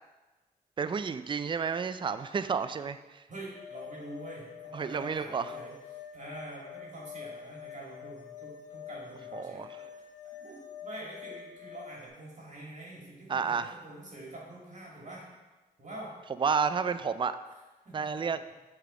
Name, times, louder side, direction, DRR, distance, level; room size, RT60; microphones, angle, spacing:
voice 1, 0.8-3.2 4.7-5.5 9.3-9.7 13.3-13.7 16.4-17.4 17.9-18.4, right 6 dB, 30° right, 12 dB, 0.3 m, -31 dB
voice 2, 3.3-9.9 10.4-15.3 15.8-16.2 17.9-18.1, right 1 dB, 45° right, -4 dB, 1.9 m, -46 dB
sound 1, 3.5-12.1, left 8 dB, 55° left, 1.5 m, -46 dB
6.6 x 3.4 x 4.8 m, 1.1 s
cardioid pair, 50°, 17 cm